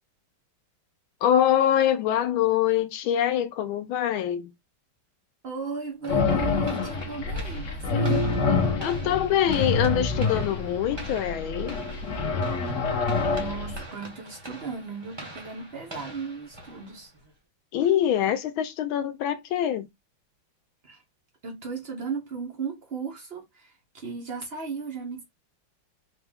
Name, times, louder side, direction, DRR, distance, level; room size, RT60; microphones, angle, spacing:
voice 1, 1.2-4.5 8.8-11.8 17.7-19.9, left 10 dB, 75° left, 1.4 m, -24 dB
voice 2, 5.4-8.3 13.3-17.1 20.8-21.0 21.4-25.2, right 5 dB, 80° right, 0.5 m, -36 dB
sound 1, 6.0-17.3, right 1 dB, 20° right, 0.6 m, -44 dB
sound 2, 6.1-13.8, left 3 dB, 55° left, 0.8 m, -27 dB
4.4 x 2.3 x 3.4 m
omnidirectional pair, 2.4 m